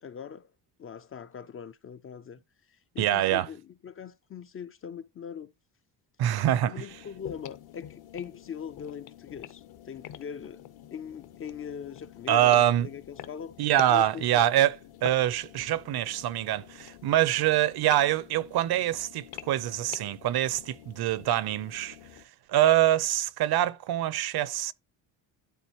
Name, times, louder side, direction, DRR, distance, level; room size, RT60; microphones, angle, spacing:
voice 1, 0.0-0.5 0.8-2.4 2.9-5.5 6.7-10.6 10.9-13.5 13.9-14.6, left 7 dB, 30° left, 0.4 m, -41 dB
voice 2, 3.0-3.5 6.2-6.9 12.3-12.9 13.6-22.0 22.5-24.7, right 12 dB, 60° right, 0.7 m, -25 dB
sound 1, 6.9-22.3, left 12 dB, 55° left, 0.9 m, -47 dB
12.0 x 4.0 x 2.9 m
cardioid pair, 130°, 44 cm